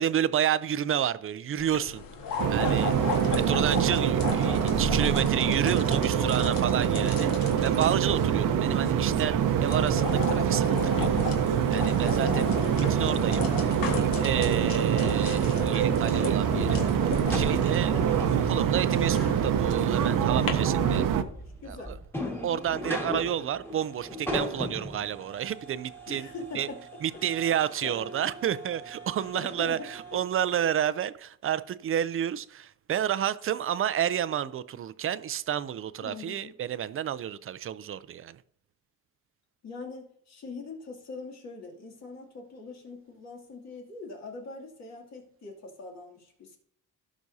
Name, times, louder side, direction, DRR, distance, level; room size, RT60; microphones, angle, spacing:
voice 1, 0.0-2.0 2.5-2.9 3.3-11.1 11.7-12.5 12.8-16.8 17.3-17.9 18.3-21.0 21.7-22.0 22.4-26.3 26.5-26.7 27.0-38.4, right 10 dB, 40° right, 0.5 m, -30 dB
sound 1, 1.6-20.5, left 4 dB, 80° left, 1.7 m, -35 dB
sound 2, 2.4-21.2, right 9 dB, 70° right, 0.8 m, -25 dB
voice 2, 3.0-4.0 9.9-10.3 12.2-12.5 14.4-14.7 17.2-17.6 17.9-18.4 20.8-21.1 21.6-22.0 22.3-22.6 26.1-26.8 27.8-28.1 29.3-30.2 36.0-36.5 39.6-46.6, left 3 dB, 50° left, 2.7 m, -42 dB
sound 3, 15.7-30.2, equal, 5° left, 1.8 m, -39 dB
16.5 x 6.2 x 2.7 m
cardioid pair, 150°, 34 cm